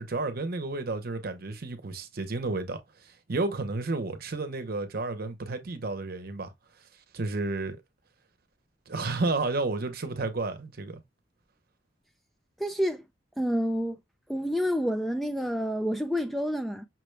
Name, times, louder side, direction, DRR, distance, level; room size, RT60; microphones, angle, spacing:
voice 1, 0.0-6.5 7.1-7.8 8.9-11.0, right 3 dB, 55° right, 0.8 m, -31 dB
voice 2, 12.6-13.0 13.4-14.0 14.3-16.9, equal, ahead, 0.3 m, -28 dB
5.9 x 2.3 x 3.2 m
head